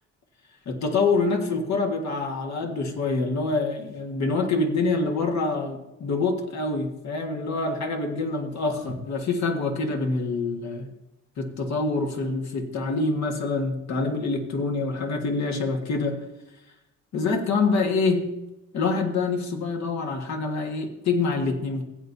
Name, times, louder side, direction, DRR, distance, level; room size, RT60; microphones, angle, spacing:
voice 1, 0.6-10.9 11.4-16.2 17.1-18.3 18.7-21.8, left 3 dB, 65° left, 3 dB, 1.6 m, -26 dB
15.5 x 8.5 x 2.7 m, 0.97 s
cardioid pair, 90°, 30 cm